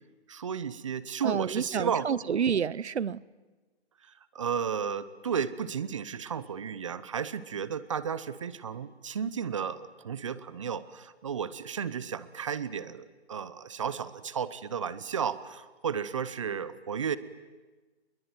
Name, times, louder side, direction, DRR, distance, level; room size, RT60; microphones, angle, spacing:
voice 1, 0.3-2.1 4.3-17.2, right 7 dB, 30° right, 17 dB, 0.8 m, -33 dB
voice 2, 1.2-3.2, right 7 dB, 80° right, 23 dB, 0.8 m, -29 dB
24.0 x 22.0 x 9.5 m, 1.2 s
hypercardioid pair, 160°, 33 cm